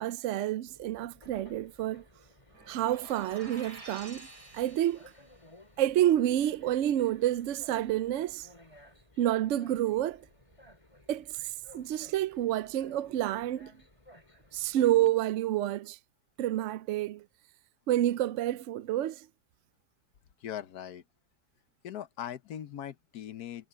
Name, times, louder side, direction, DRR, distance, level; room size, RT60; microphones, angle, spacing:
voice 1, 0.0-2.0 2.7-4.3 4.5-5.0 5.8-8.5 9.2-10.2 11.1-13.7 14.5-16.0 16.4-17.3 17.9-19.3, right 13 dB, 70° right, 0.7 m, -29 dB
Train, 0.7-15.1, left 1 dB, 20° left, 3.0 m, -57 dB
sound 1, 2.5-5.3, right 3 dB, 90° right, 3.8 m, -49 dB
voice 2, 20.4-21.0 21.8-23.7, left 10 dB, 75° left, 1.4 m, -40 dB
omnidirectional pair, 1.7 m